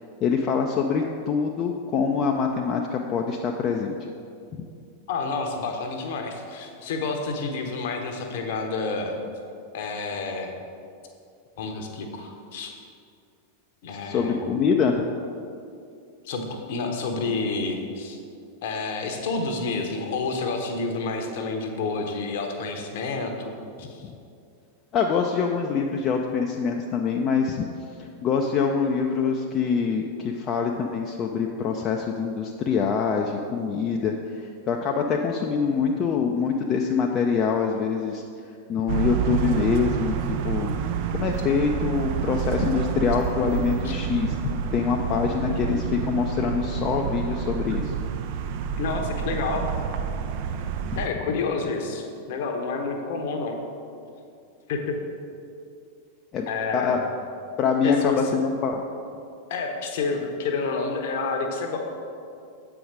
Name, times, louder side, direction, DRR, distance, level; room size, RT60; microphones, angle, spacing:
voice 1, 0.2-4.0 4.6-4.7 13.9-15.0 24.0-24.2 24.9-27.7 28.0-38.2 38.7-40.2 40.4-40.7 41.1-47.9 50.9-51.0 56.3-56.5 56.7-57.0 57.6-58.8, left 6 dB, 30° left, 1 dB, 0.4 m, -25 dB
voice 2, 5.1-9.1 9.7-10.5 11.6-12.7 13.8-14.4 16.2-18.2 18.6-23.5 23.8-24.0 43.8-43.9 48.8-49.7 51.0-53.6 54.7-54.9 56.5-57.0 57.8-58.2 59.5-61.8, left 4 dB, 55° left, 4 dB, 0.9 m, -29 dB
sound 1, 38.9-51.1, right 8 dB, 50° right, 0.4 m, -28 dB
7.8 x 4.7 x 5.1 m, 2.5 s
figure-of-eight pair, 90°, 0 cm